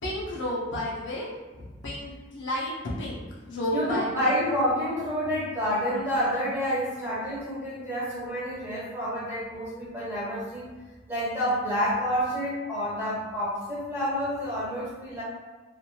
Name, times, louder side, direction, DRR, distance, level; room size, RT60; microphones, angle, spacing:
voice 1, 0.0-3.2 3.5-4.3, left 1 dB, 70° left, -4 dB, 0.7 m, -32 dB
voice 2, 3.7-10.7 11.1-15.2, equal, 15° right, -8 dB, 1.0 m, -28 dB
2.9 x 2.6 x 2.2 m, 1.3 s
head